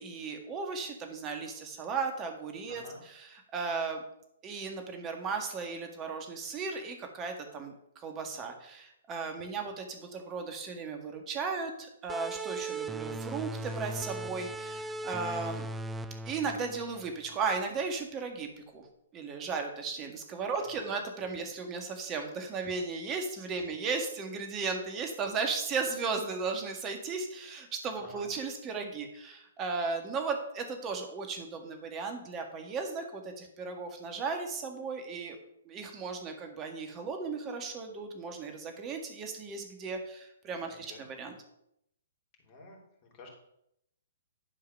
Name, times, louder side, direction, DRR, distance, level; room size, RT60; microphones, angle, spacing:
voice 1, 0.0-4.0 4.4-15.7 16.3-18.9 19.1-35.4 35.7-41.3, right 4 dB, 25° right, 4 dB, 1.8 m, -36 dB
voice 2, 2.7-3.0 9.4-9.5 20.5-20.9 23.6-23.7 28.0-28.3 40.6-41.0 42.4-43.3, left 2 dB, 35° left, -1 dB, 3.6 m, -51 dB
sound 1, 12.1-17.4, right 2 dB, 10° right, 0.4 m, -38 dB
11.5 x 4.7 x 5.8 m, 0.77 s
figure-of-eight pair, 125°, 0 cm